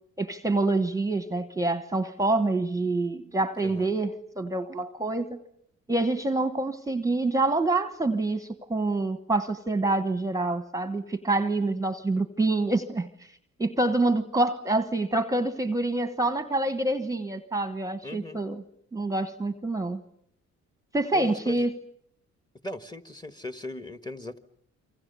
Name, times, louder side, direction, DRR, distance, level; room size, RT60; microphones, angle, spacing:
voice 1, 0.2-4.1 4.4-5.4 5.9-13.1 13.6-18.6 18.9-20.0 20.9-21.7, right 2 dB, 10° right, 11 dB, 1.2 m, -26 dB
voice 2, 3.6-3.9 18.0-18.4 21.1-21.7 22.6-24.4, left 1 dB, 15° left, 10 dB, 1.7 m, -38 dB
27.5 x 24.5 x 6.9 m, 0.69 s
cardioid pair, 90°, 30 cm